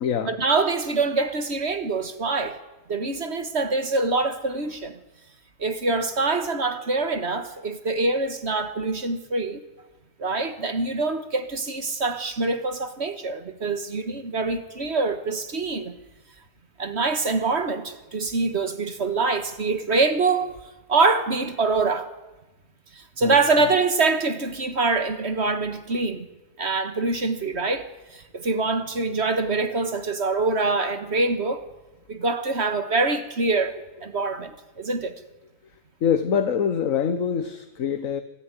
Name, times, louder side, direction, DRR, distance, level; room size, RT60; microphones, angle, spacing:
voice 1, 0.2-2.6 2.9-5.0 5.6-9.6 10.2-16.0 16.8-20.5 20.9-22.1 22.9-26.3 26.6-27.9 28.1-31.7 32.1-33.8 34.0-35.2, right 3 dB, 45° right, 9 dB, 1.7 m, -25 dB
voice 2, 36.0-38.2, left 7 dB, 60° left, 9 dB, 1.4 m, -24 dB
24.0 x 14.0 x 9.7 m, 1.1 s
omnidirectional pair, 1.6 m